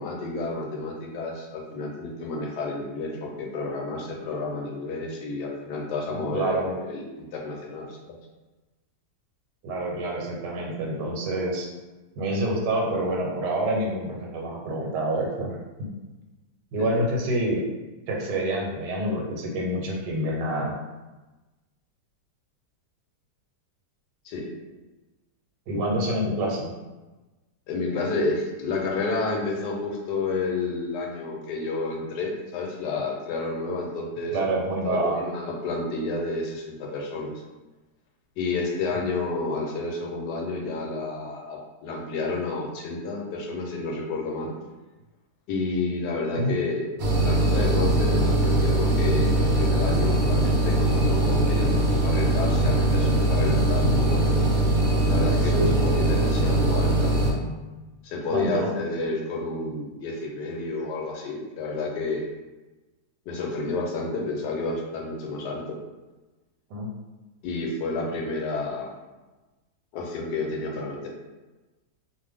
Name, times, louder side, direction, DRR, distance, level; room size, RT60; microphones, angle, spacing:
voice 1, 0.0-8.1 16.8-16.9 24.2-24.4 27.7-34.5 34.8-37.3 38.4-44.5 45.5-46.9 47.2-54.4 55.1-57.1 58.0-62.2 63.3-65.8 67.4-68.9 69.9-71.1, left 3 dB, 80° left, 0 dB, 1.2 m, -30 dB
voice 2, 6.1-6.7 9.6-11.7 12.2-15.9 16.7-17.6 18.1-20.7 25.7-26.7 34.3-35.2 46.4-46.5 55.5-55.7 58.3-58.7 66.7-66.9, right 1 dB, 85° right, -1 dB, 1.3 m, -27 dB
sound 1, 47.0-57.3, right 1 dB, 65° right, 0.9 m, -21 dB
2.5 x 2.5 x 3.3 m, 1.1 s
omnidirectional pair, 1.8 m